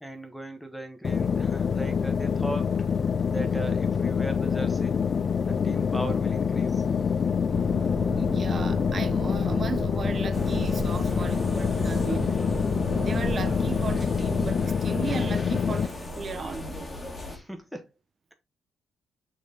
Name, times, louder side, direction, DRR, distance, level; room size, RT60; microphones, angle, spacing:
voice 1, 0.0-2.8 3.3-5.0 5.4-6.8 17.3-17.9, right 1 dB, ahead, 1.5 m, -38 dB
sound 1, 1.0-15.9, left 6 dB, 45° left, 0.3 m, -26 dB
sound 2, 7.5-14.7, right 2 dB, 20° right, 2.5 m, -35 dB
voice 2, 8.2-12.3 13.0-16.9, right 5 dB, 40° right, 0.7 m, -36 dB
sound 3, 10.3-17.4, left 1 dB, 20° left, 1.7 m, -37 dB
6.2 x 4.3 x 3.6 m
cardioid pair, 90°, 0 cm